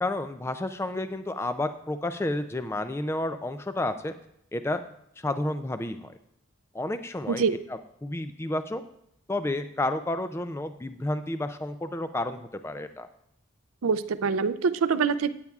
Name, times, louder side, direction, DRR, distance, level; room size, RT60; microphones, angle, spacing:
voice 1, 0.0-4.1 4.5-4.8 5.2-6.1 6.7-7.4 7.7-8.8 9.3-13.1, left 1 dB, 10° left, 9 dB, 0.3 m, -31 dB
voice 2, 13.8-15.3, right 5 dB, 90° right, 13 dB, 0.5 m, -25 dB
15.5 x 9.4 x 2.4 m, 0.74 s
head